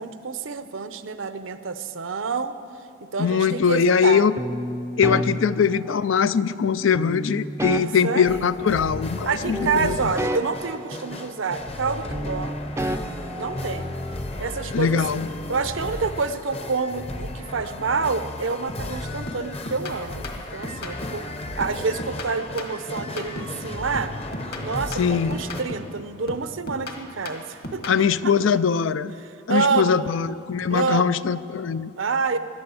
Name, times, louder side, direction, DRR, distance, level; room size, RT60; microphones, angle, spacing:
voice 1, 0.0-2.5 3.0-4.2 7.8-8.5 9.2-12.6 13.4-14.0 14.4-15.2 15.5-21.3 21.6-24.1 24.6-27.8 28.2-28.3 29.5-30.1 30.7-31.2 32.0-32.4, right 4 dB, 80° right, 11 dB, 0.8 m, -28 dB
voice 2, 3.2-4.3 5.0-10.2 14.7-15.3 25.0-25.4 27.9-29.1 29.5-31.9, left 6 dB, 80° left, 15 dB, 0.5 m, -21 dB
sound 1, 4.4-6.4 6.9-9.3 9.5-11.8 12.1-14.2, right 1 dB, 15° right, 0.5 m, -32 dB
sound 2, 8.3-25.6, left 1 dB, 30° left, 0.8 m, -35 dB
sound 3, 18.7-19.0 19.3-21.3 21.6-23.6 23.9-26.0 26.3-28.0, left 1 dB, 55° left, 1.6 m, -36 dB
17.5 x 11.5 x 7.0 m, 2.5 s
head